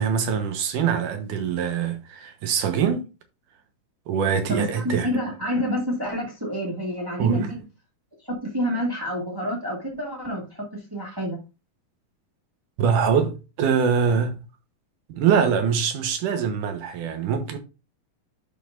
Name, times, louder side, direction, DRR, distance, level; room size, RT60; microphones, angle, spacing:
voice 1, 0.0-3.1 4.1-5.1 7.2-7.5 12.8-14.4 15.1-17.6, right 7 dB, 70° right, 2.5 m, -23 dB
voice 2, 4.5-7.6 8.3-11.4, equal, 10° right, 1.0 m, -28 dB
11.5 x 5.3 x 2.5 m
omnidirectional pair, 4.1 m